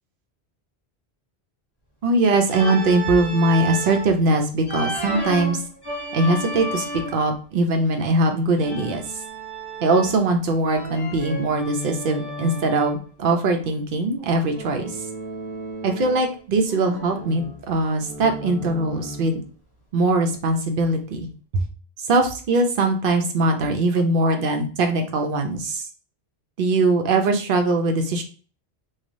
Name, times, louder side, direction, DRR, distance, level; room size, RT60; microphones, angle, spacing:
voice 1, 2.0-5.6 6.1-6.8 7.1-9.0 9.8-14.9 15.8-19.4 19.9-21.7 22.0-25.8 26.6-28.2, right 2 dB, 60° right, 5 dB, 0.7 m, -21 dB
Organ, 2.5-4.1 4.7-7.3 8.6-10.3 10.7-13.0 14.5-16.3 16.7-19.4, right 1 dB, 25° left, 0.7 m, -33 dB
3.1 x 2.3 x 2.5 m, 0.39 s
omnidirectional pair, 1.1 m